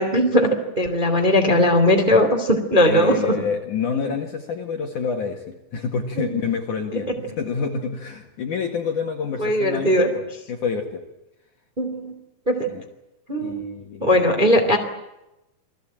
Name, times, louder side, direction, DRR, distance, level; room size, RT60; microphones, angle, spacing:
voice 1, 0.0-3.4 3.9-4.1 6.2-6.3 9.4-10.1 11.8-12.1 12.5-12.7 13.3-13.6 14.0-14.8, equal, 15° right, 4 dB, 2.5 m, -19 dB
voice 2, 2.8-10.2 10.5-11.0 12.7-12.8 13.4-14.2, left 5 dB, 50° left, 3 dB, 2.8 m, -28 dB
29.0 x 21.0 x 9.0 m, 0.92 s
omnidirectional pair, 5.5 m